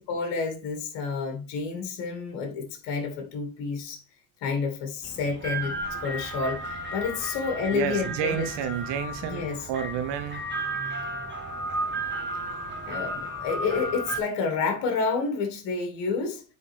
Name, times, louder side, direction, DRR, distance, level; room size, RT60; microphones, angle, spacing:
voice 1, 0.0-4.0 4.4-8.5 9.2-9.7 10.8-11.1 12.8-16.4, left 5 dB, 60° left, 2.1 m, -29 dB
sound 1, 5.0-14.2, right 1 dB, 20° right, 2.0 m, -33 dB
voice 2, 7.7-10.5, right 9 dB, 55° right, 0.9 m, -30 dB
9.7 x 4.0 x 3.4 m
hypercardioid pair, 80°, 49 cm